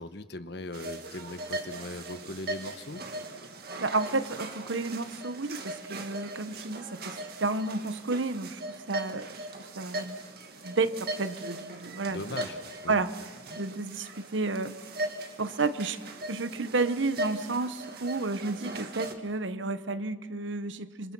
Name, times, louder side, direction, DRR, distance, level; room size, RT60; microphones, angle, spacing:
voice 1, 0.0-3.0 12.1-13.0, left 2 dB, 60° left, 11 dB, 1.2 m, -39 dB
sound 1, 0.7-19.1, right 1 dB, 55° right, 2.1 m, -39 dB
voice 2, 3.8-9.3 9.6-10.2 10.6-12.4 12.9-13.1 13.6-14.7 15.4-16.0 16.3-21.1, right 3 dB, 75° right, 12 dB, 1.1 m, -31 dB
27.0 x 26.5 x 6.2 m, 1.5 s
head